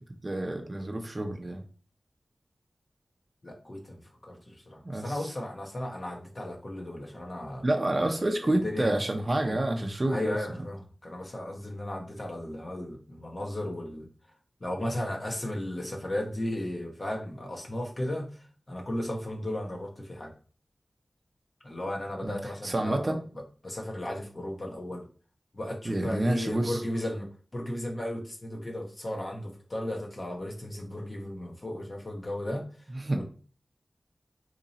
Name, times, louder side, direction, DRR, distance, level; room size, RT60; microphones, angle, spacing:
voice 1, 0.2-1.6 4.8-5.3 7.6-10.3 22.2-23.2 25.8-26.8 33.0-33.2, right 1 dB, 40° right, 3 dB, 0.6 m, -28 dB
voice 2, 3.4-7.7 8.4-8.9 9.5-9.6 10.1-14.1 14.6-20.3 21.6-25.1 25.5-32.6 33.1-33.2, left 1 dB, 45° left, 1 dB, 1.0 m, -35 dB
2.8 x 2.6 x 4.0 m, 0.39 s
wide cardioid pair, 55°, 0 cm